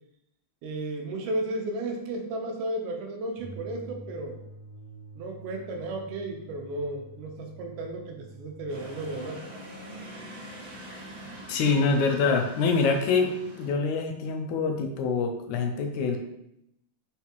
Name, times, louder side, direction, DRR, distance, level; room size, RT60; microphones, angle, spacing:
voice 1, 0.6-4.4 5.2-9.4, right 2 dB, 90° right, 2 dB, 2.4 m, -34 dB
sound 1, 3.4-9.3, right 1 dB, 20° left, 0.5 m, -47 dB
sound 2, 8.7-13.7, right 1 dB, 50° right, 2.4 m, -44 dB
voice 2, 11.5-16.2, left 4 dB, 80° left, 3 dB, 2.1 m, -25 dB
5.7 x 5.6 x 3.0 m, 0.80 s
omnidirectional pair, 3.5 m